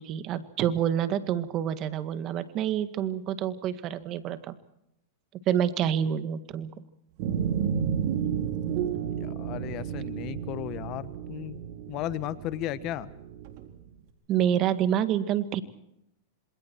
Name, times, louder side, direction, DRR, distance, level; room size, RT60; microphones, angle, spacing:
voice 1, 0.0-4.5 5.5-6.7 14.3-15.6, right 10 dB, 35° right, 11 dB, 1.8 m, -27 dB
sound 1, 7.2-13.8, right 8 dB, 55° right, 3.9 m, -32 dB
voice 2, 9.0-11.6 11.9-13.1, left 14 dB, 40° left, 15 dB, 1.2 m, -35 dB
27.0 x 26.0 x 4.6 m, 0.78 s
hypercardioid pair, 130°, 0 cm